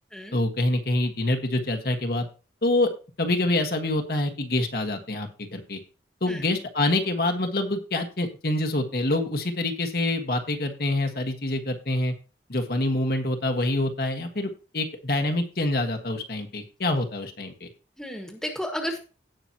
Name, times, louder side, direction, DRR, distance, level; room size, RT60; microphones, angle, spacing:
voice 1, 0.3-2.3 2.6-2.9 3.2-5.8 6.2-12.1 12.5-17.7, left 2 dB, 55° left, 5 dB, 1.4 m, -26 dB
voice 2, 18.0-19.0, equal, 5° left, 3 dB, 1.5 m, -32 dB
17.0 x 5.9 x 2.9 m, 0.33 s
head